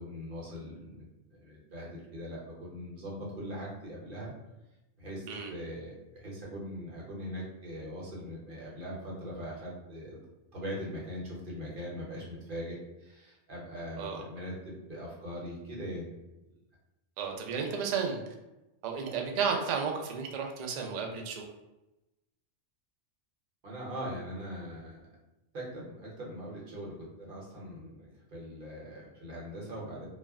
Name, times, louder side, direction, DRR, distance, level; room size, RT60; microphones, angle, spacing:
voice 1, 0.0-4.3 5.0-10.2 10.5-16.1 23.6-25.0 25.5-30.1, equal, 45° right, -4 dB, 1.0 m, -41 dB
voice 2, 17.2-18.2 18.8-21.4, right 6 dB, 70° right, 2 dB, 0.4 m, -33 dB
2.4 x 2.1 x 3.5 m, 0.97 s
omnidirectional pair, 1.3 m